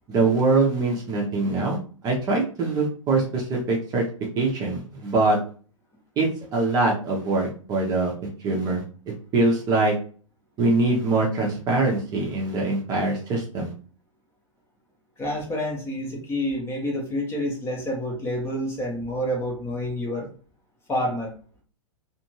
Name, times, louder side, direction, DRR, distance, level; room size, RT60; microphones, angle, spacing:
voice 1, 0.1-1.8 2.0-4.0 4.4-5.4 6.2-8.1 8.4-8.8 9.3-9.9 10.6-13.7, right 3 dB, 25° right, -1 dB, 0.7 m, -23 dB
voice 2, 15.2-20.3 20.9-21.4, equal, 15° left, 0 dB, 0.7 m, -28 dB
2.5 x 2.5 x 2.9 m, 0.41 s
figure-of-eight pair, 110°, 17 cm